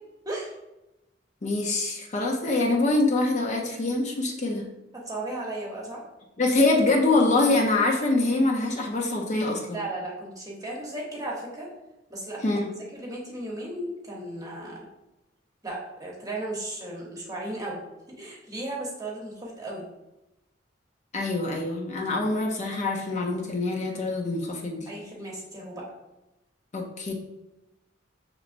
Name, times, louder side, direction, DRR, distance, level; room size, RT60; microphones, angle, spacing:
voice 1, 1.4-4.7 6.4-9.8 12.4-12.7 21.1-24.9 26.7-27.1, left 2 dB, 40° left, 0 dB, 0.5 m, -24 dB
voice 2, 4.9-6.0 9.7-11.7 12.1-12.4 12.9-14.8 15.6-17.8 18.2-19.8 24.8-25.8, right 1 dB, 20° right, -3 dB, 0.9 m, -35 dB
6.1 x 3.0 x 2.5 m, 0.98 s
head